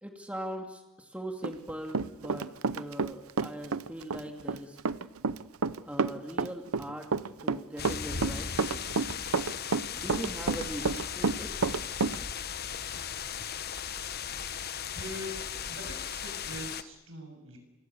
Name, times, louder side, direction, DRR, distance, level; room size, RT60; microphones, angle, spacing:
voice 1, 0.0-2.5 2.7-4.8 5.9-7.1 7.4-8.5 10.0-11.8, equal, 5° right, 3 dB, 2.4 m, -40 dB
Run, 1.4-3.1 3.4-12.2, right 4 dB, 90° right, 0.8 m, -29 dB
sound 1, 7.8-16.8, left 7 dB, 45° left, 1.1 m, -37 dB
voice 2, 14.9-15.4 15.7-17.6, equal, 65° right, 4 dB, 7.0 m, -42 dB
29.5 x 25.5 x 7.0 m, 1.1 s
head